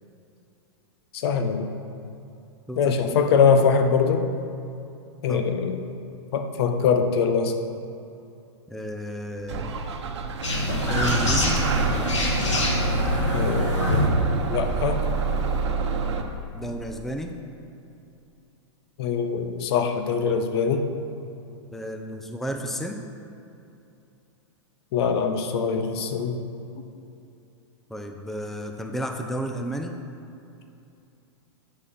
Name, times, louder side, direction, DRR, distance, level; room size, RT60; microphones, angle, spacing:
voice 1, 1.2-1.7 2.8-4.3 5.2-5.8 6.3-7.5 13.3-14.0 14.5-15.0 19.0-20.9 24.9-26.4, left 6 dB, 60° left, 6 dB, 0.9 m, -23 dB
voice 2, 2.7-3.2 5.3-5.4 8.7-10.1 10.9-11.6 16.5-17.4 21.7-23.0 27.9-30.0, equal, ahead, 4 dB, 0.6 m, -32 dB
Bus / Engine starting, 9.5-16.2, right 3 dB, 70° right, 0.9 m, -26 dB
sound 1, 10.4-14.1, left 2 dB, 85° left, 1.8 m, -25 dB
7.6 x 6.1 x 5.9 m, 2.7 s
hypercardioid pair, 115°, 15 cm